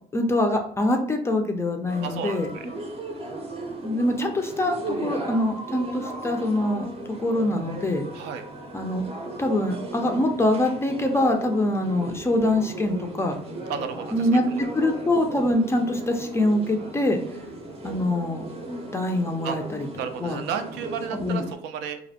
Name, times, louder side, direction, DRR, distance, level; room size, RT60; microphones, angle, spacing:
voice 1, 0.1-2.5 3.8-6.9 7.2-8.1 8.7-9.1 9.4-13.4 14.1-14.4 14.7-17.2 17.8-18.5 18.9-19.9 20.2-20.4 21.1-21.4, left 1 dB, 15° left, 3 dB, 0.3 m, -24 dB
sound 1, 1.9-21.5, right 2 dB, 35° right, 0.6 m, -37 dB
voice 2, 2.0-2.6 8.1-8.5 13.7-14.6 19.4-19.6 20.0-22.0, right 7 dB, 85° right, 8 dB, 0.4 m, -33 dB
2.5 x 2.0 x 2.7 m, 0.66 s
cardioid pair, 110°, 17 cm